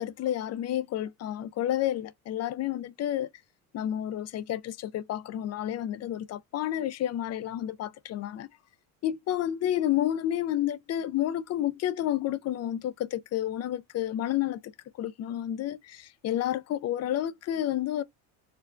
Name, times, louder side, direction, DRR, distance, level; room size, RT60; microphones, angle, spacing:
voice 1, 0.0-3.3 3.7-8.5 9.0-14.6 15.0-18.0, left 12 dB, 40° left, 0.4 m, -30 dB
4.4 x 2.1 x 2.5 m
supercardioid pair, 105°, 44 cm